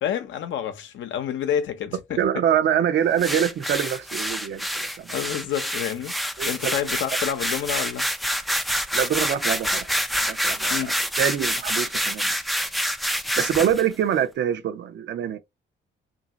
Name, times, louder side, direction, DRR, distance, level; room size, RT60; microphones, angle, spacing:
voice 1, 0.0-2.2 5.1-8.1 10.7-11.0, left 9 dB, 70° left, 0.7 m, -29 dB
voice 2, 2.2-5.1 6.4-6.7 8.9-9.9 10.2-10.9 11.2-12.3 13.4-15.4, right 9 dB, 65° right, 0.6 m, -25 dB
sound 1, 3.2-13.8, equal, ahead, 0.3 m, -27 dB
2.9 x 2.7 x 2.6 m
cardioid pair, 90°, 20 cm